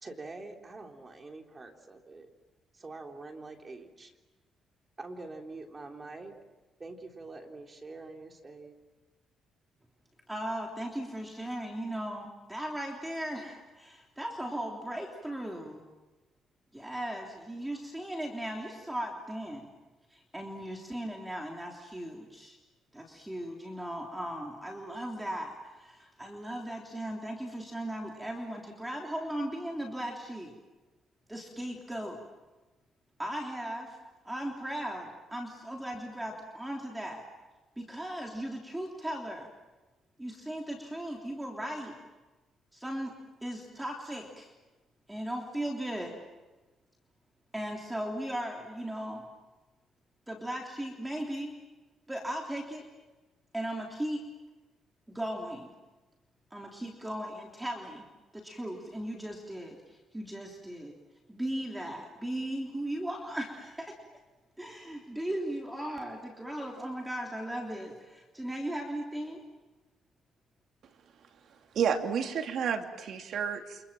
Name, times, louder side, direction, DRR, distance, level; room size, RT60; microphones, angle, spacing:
voice 1, 0.0-2.3 2.7-4.1 5.0-6.4 6.8-8.8, right 3 dB, 25° right, 2 dB, 3.5 m, -45 dB
voice 2, 10.3-15.8 16.7-19.7 20.1-22.6 22.9-30.5 31.3-32.2 33.2-34.0 34.2-37.2 37.8-39.5 40.2-41.9 42.7-43.1 43.4-44.5 45.1-46.1 47.5-49.2 50.3-51.5 52.1-52.8 53.5-54.2 55.1-55.7 56.5-58.1 58.3-60.9 61.3-63.9 64.6-69.4, right 1 dB, 5° right, 0 dB, 3.4 m, -37 dB
voice 3, 71.7-73.8, right 7 dB, 65° right, 4 dB, 2.7 m, -30 dB
29.0 x 27.0 x 7.6 m, 1.2 s
cardioid pair, 130°, 0 cm